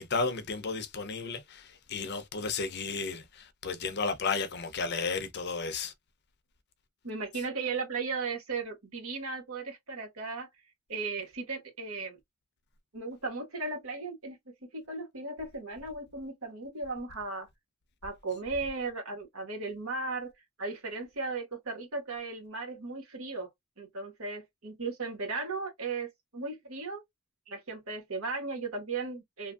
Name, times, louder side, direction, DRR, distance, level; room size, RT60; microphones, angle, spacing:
voice 1, 0.0-5.9, left 4 dB, 50° left, 0.6 m, -33 dB
voice 2, 7.0-10.5 10.9-12.2 12.9-14.4 14.7-17.5 18.0-20.3 20.6-23.5 23.8-27.0 27.5-29.5, right 3 dB, 75° right, 1.4 m, -36 dB
2.8 x 2.5 x 2.3 m
head